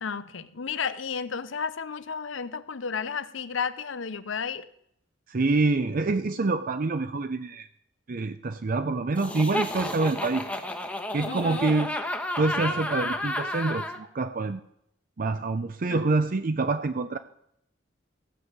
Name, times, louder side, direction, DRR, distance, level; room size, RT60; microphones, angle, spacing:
voice 1, 0.0-4.7 11.3-11.7 15.9-16.1, left 6 dB, 80° left, 14 dB, 0.8 m, -33 dB
voice 2, 5.3-7.7 8.1-10.5 11.1-11.9 12.4-14.6 15.2-17.2, right 3 dB, 45° right, 10 dB, 0.5 m, -26 dB
Laughter, 9.2-14.0, left 1 dB, 5° left, 1.2 m, -31 dB
16.0 x 5.5 x 8.1 m, 0.72 s
head